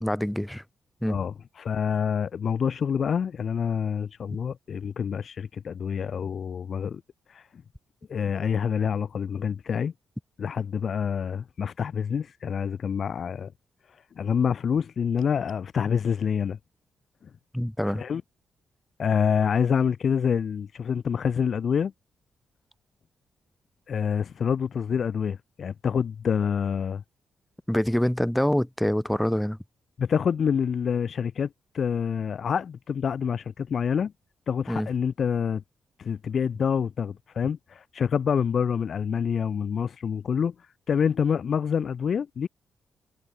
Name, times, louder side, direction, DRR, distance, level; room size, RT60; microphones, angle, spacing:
voice 1, 0.0-0.6 1.0-1.2 17.5-18.0 27.7-29.6 34.7-34.9, equal, 5° left, 1.6 m, -25 dB
voice 2, 1.1-7.0 7.3-7.5 8.1-9.9 10.4-13.5 14.2-16.6 17.8-18.2 19.0-21.9 23.9-27.0 30.0-34.1 34.5-35.6 36.0-40.5 40.9-42.5, left 7 dB, 55° left, 0.5 m, -27 dB
cardioid pair, 110°, 0 cm